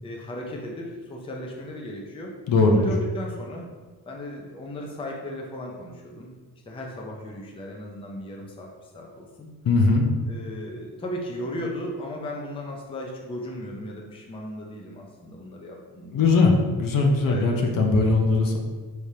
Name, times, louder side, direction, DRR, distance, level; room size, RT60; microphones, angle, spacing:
voice 1, 0.0-2.3 2.7-3.7 4.1-6.3 6.7-9.5 10.3-16.4 17.2-17.5, left 1 dB, 15° left, -1 dB, 0.5 m, -36 dB
voice 2, 2.5-2.9 9.6-10.0 16.1-16.5 16.8-18.6, left 3 dB, 55° left, 2 dB, 0.7 m, -19 dB
5.0 x 3.2 x 2.8 m, 1.3 s
cardioid pair, 120°, 40 cm